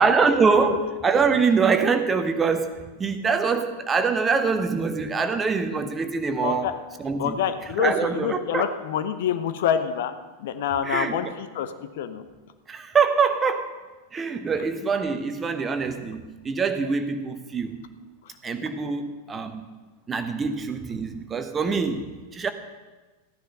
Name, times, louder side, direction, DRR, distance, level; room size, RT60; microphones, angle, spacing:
voice 1, 0.0-7.4 7.6-8.8 10.8-11.3 12.7-13.8 14.1-17.8 18.4-19.6 20.1-22.5, right 5 dB, 20° right, 8 dB, 1.1 m, -24 dB
voice 2, 6.4-6.7 7.2-10.1 10.4-11.7 12.0-12.2, left 8 dB, 55° left, 10 dB, 0.9 m, -26 dB
14.5 x 10.0 x 5.5 m, 1.3 s
figure-of-eight pair, 90°, 0 cm